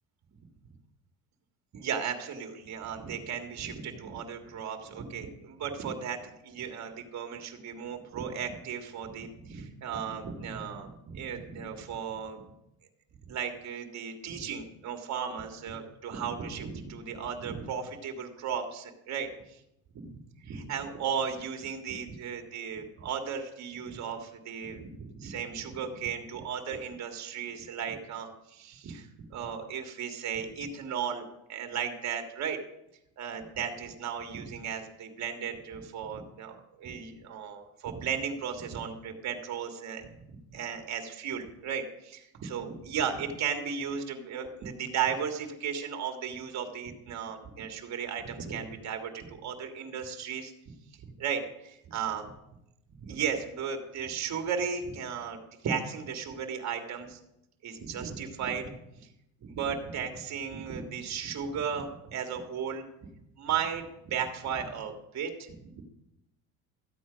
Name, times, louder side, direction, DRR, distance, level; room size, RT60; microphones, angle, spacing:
voice 1, 1.7-12.4 13.3-19.6 20.1-32.6 33.2-40.2 40.5-50.7 51.0-52.3 53.0-57.2 57.6-58.7 59.4-62.8 63.4-65.8, right 7 dB, 45° right, 5 dB, 1.9 m, -35 dB
13.5 x 8.5 x 5.1 m, 0.84 s
supercardioid pair, 105°, 40 cm